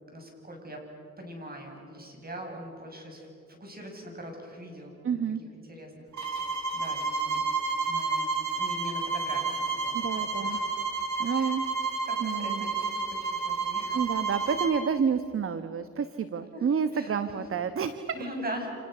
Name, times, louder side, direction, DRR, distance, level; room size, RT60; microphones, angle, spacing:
voice 1, 0.0-0.9 1.2-5.2 5.6-7.4 7.9-9.9 10.2-10.7 11.3-11.6 12.0-14.0 16.5-17.4 18.1-18.7, right 1 dB, 30° right, 2 dB, 7.8 m, -42 dB
voice 2, 5.0-5.4 9.9-10.6 11.2-11.7 12.2-12.7 13.9-18.1, right 6 dB, 45° right, 11 dB, 1.3 m, -29 dB
sound 1, 6.1-14.8, right 4 dB, 70° right, 4.5 m, -30 dB
29.5 x 28.5 x 6.9 m, 2.5 s
cardioid pair, 90°, 30 cm